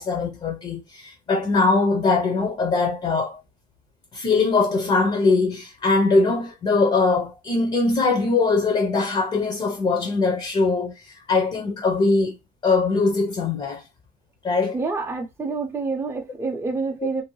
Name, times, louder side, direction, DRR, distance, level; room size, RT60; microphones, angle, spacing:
voice 1, 0.0-3.4 4.1-12.4 12.6-13.8 14.4-14.8, left 3 dB, 35° left, 0.7 m, -21 dB
voice 2, 14.7-17.2, right 4 dB, 15° right, 0.6 m, -27 dB
2.7 x 2.0 x 3.0 m
cardioid pair, 110°, 17 cm